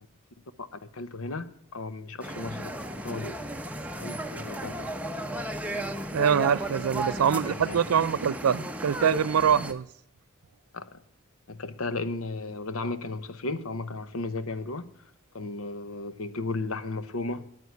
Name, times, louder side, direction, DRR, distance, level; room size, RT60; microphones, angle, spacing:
voice 1, 0.6-2.7 3.0-3.4 4.0-4.9 7.5-7.8 10.7-11.0 11.5-14.9 15.3-17.5, left 3 dB, 70° left, 0.8 m, -35 dB
sound 1, 2.2-9.7, right 1 dB, 5° right, 0.9 m, -35 dB
voice 2, 6.1-9.9, right 7 dB, 80° right, 0.4 m, -24 dB
9.5 x 9.4 x 9.4 m
head